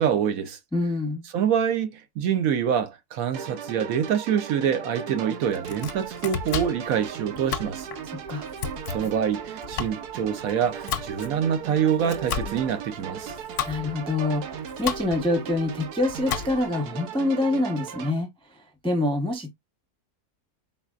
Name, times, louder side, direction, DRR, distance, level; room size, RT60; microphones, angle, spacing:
voice 1, 0.0-0.6 1.3-7.9 8.9-13.3, right 8 dB, 70° right, 1.0 m, -26 dB
voice 2, 0.7-1.2 8.1-8.5 13.7-18.3 18.8-19.5, left 2 dB, 5° left, 0.5 m, -26 dB
sound 1, 3.3-18.1, right 8 dB, 85° right, 1.3 m, -37 dB
Domestic sounds home sounds, 5.5-16.8, left 8 dB, 65° left, 0.8 m, -35 dB
4.0 x 4.0 x 2.3 m
omnidirectional pair, 1.6 m